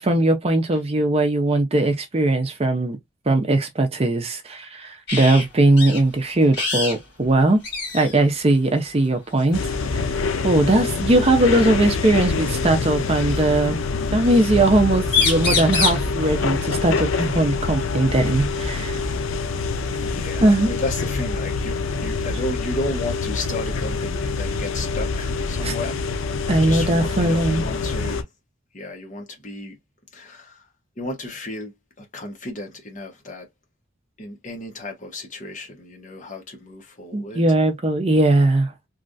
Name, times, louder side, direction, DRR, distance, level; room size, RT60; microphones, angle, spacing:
voice 1, 0.0-3.0 3.3-7.6 7.9-10.1 10.4-13.8 14.1-19.0 20.4-20.7 25.6-25.7 26.5-27.6 37.1-38.7, right 2 dB, 30° right, 0.5 m, -19 dB
sound 1, 5.1-5.5 5.8-6.0 6.5-7.0 7.3-7.4 7.6-8.2 9.4-9.6 11.3-11.4 12.5-13.4 14.7-14.8 15.0-16.1 18.0-18.1 18.6-19.6, left 5 dB, 60° left, 1.6 m, -25 dB
sound 2, 9.5-28.2, left 4 dB, 90° left, 0.5 m, -25 dB
voice 2, 20.0-26.1 26.6-28.3 28.7-29.8 30.1-30.7 31.0-33.5 34.2-37.4, left 2 dB, 40° left, 1.0 m, -33 dB
3.1 x 2.4 x 2.5 m
head